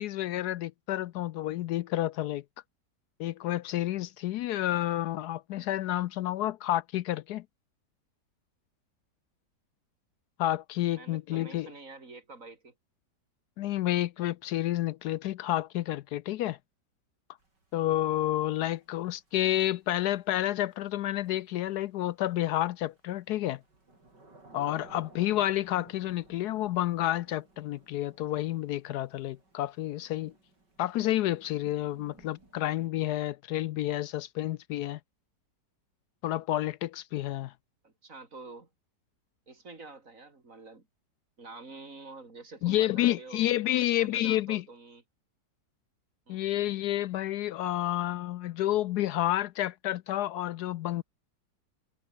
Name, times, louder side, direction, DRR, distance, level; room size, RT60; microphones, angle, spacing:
voice 1, 0.0-2.4 3.2-7.4 10.4-11.7 13.6-16.6 17.7-23.6 24.5-30.3 30.8-35.0 36.2-37.5 42.6-44.6 46.3-51.0, left 14 dB, 75° left, 1.1 m, -30 dB
voice 2, 10.9-12.7 37.8-38.7 39.5-40.9 41.4-45.0 46.3-46.5, right 3 dB, 50° right, 3.7 m, -48 dB
Thunder / Rain, 17.4-32.9, right 2 dB, 80° right, 7.2 m, -57 dB
omnidirectional pair, 1.8 m